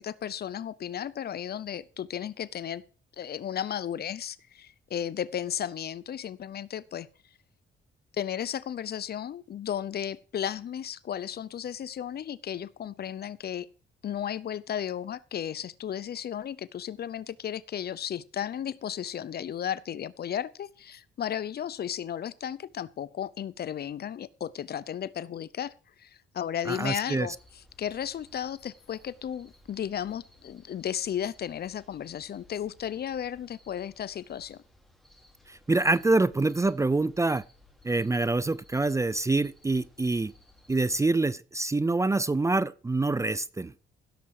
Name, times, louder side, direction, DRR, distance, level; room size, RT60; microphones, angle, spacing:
voice 1, 0.0-2.8 3.2-7.1 8.2-13.7 14.0-25.7 26.0-27.3 27.8-34.6, left 9 dB, 55° left, 0.8 m, -34 dB
voice 2, 26.7-27.3 35.5-37.4 37.8-40.3 40.7-43.7, right 2 dB, 15° right, 0.5 m, -26 dB
sound 1, 27.2-41.1, left 1 dB, ahead, 4.6 m, -59 dB
16.5 x 6.9 x 4.8 m
cardioid pair, 90°, 20 cm